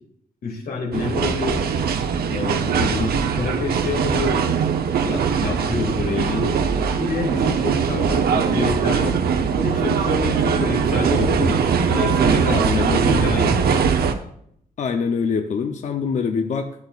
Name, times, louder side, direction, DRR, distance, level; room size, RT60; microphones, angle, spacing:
voice 1, 0.4-1.6 2.3-4.5 5.0-6.6 6.9-9.2 9.5-11.6 11.9-13.8, left 4 dB, 70° left, 0 dB, 2.5 m, -27 dB
sound 1, 0.9-14.1, right 6 dB, 80° right, 0.8 m, -21 dB
voice 2, 12.5-13.1 14.8-16.7, left 5 dB, 50° left, 5 dB, 0.7 m, -24 dB
13.0 x 8.7 x 2.4 m, 0.69 s
wide cardioid pair, 170°, 16 cm